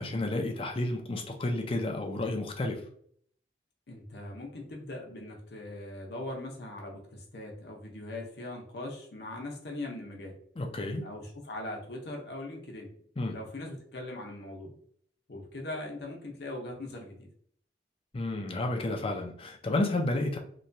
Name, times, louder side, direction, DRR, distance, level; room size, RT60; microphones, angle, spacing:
voice 1, 0.0-2.8 10.6-11.0 13.2-13.4 18.1-20.4, left 2 dB, 30° left, 2 dB, 0.4 m, -31 dB
voice 2, 3.9-10.3 11.0-12.9 13.3-14.7 15.3-17.3, left 1 dB, 65° left, 0 dB, 0.7 m, -40 dB
3.0 x 2.2 x 2.6 m, 0.62 s
head